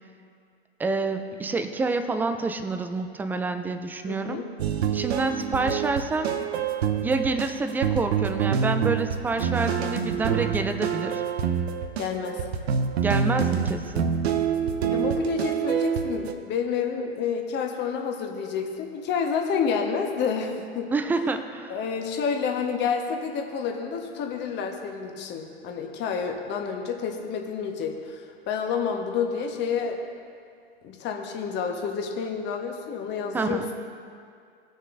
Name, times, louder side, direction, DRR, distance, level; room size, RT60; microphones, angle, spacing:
voice 1, 0.8-4.4 4.9-6.4 7.0-11.2 13.0-14.1 20.9-21.8 33.3-33.7, right 3 dB, 5° right, 7 dB, 0.3 m, -28 dB
voice 2, 4.1-4.5 12.0-12.4 14.9-20.9 21.7-30.0 30.8-33.7, left 6 dB, 35° left, 2 dB, 1.3 m, -29 dB
sound 1, 4.6-16.3, right 7 dB, 75° right, 0.8 m, -26 dB
19.0 x 6.6 x 2.6 m, 2.3 s
hypercardioid pair, 105°, 32 cm